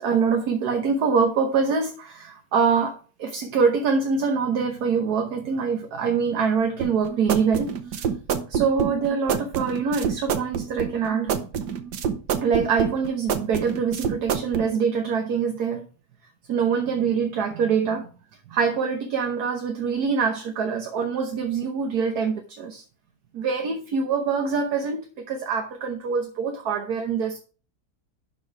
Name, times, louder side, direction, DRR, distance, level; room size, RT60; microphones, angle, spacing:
voice 1, 0.0-8.1 8.5-11.4 12.4-15.9 16.5-18.1 18.5-22.8 23.3-27.4, right 5 dB, 70° right, 1.5 m, -24 dB
sound 1, 6.8-14.7, right 7 dB, 90° right, 1.5 m, -27 dB
11.5 x 4.6 x 4.7 m
omnidirectional pair, 1.7 m